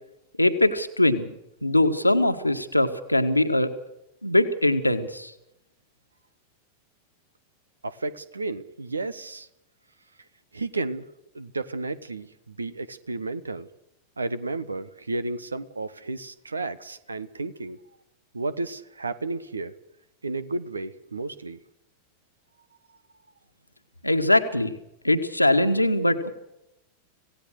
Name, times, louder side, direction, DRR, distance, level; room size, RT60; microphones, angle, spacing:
voice 1, 0.4-1.3 1.6-3.7 4.2-5.3 24.0-24.7 25.0-26.3, left 1 dB, 85° left, 7 dB, 1.8 m, -21 dB
voice 2, 7.8-9.5 10.5-11.1 11.3-13.7 14.2-17.8 18.3-19.7 20.2-21.6, right 3 dB, 75° right, 16 dB, 1.3 m, -32 dB
26.0 x 17.5 x 6.6 m, 0.85 s
figure-of-eight pair, 90°, 0 cm